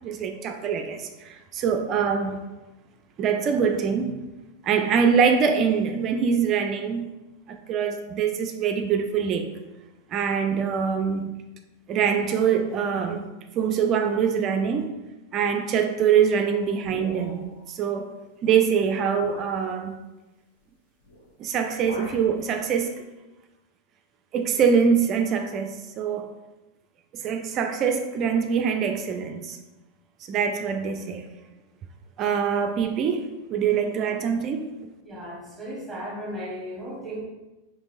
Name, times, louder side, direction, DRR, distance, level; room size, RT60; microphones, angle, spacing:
voice 1, 0.0-2.5 3.2-4.2 4.6-7.1 7.5-9.5 10.1-11.4 11.9-13.3 13.6-14.9 15.3-18.1 18.4-20.0 21.4-23.0 24.3-26.3 27.1-29.6 30.3-31.3 32.2-34.7, right 6 dB, 35° right, 5 dB, 0.4 m, -24 dB
sound 1, 16.8-17.6 18.5-18.6 19.2-19.6 21.0-21.3 21.5-22.3, equal, 65° left, 0.9 m, -41 dB
voice 2, 35.0-37.2, equal, 5° right, -2 dB, 1.0 m, -35 dB
5.1 x 3.4 x 2.6 m, 1.1 s
figure-of-eight pair, 90°, 0 cm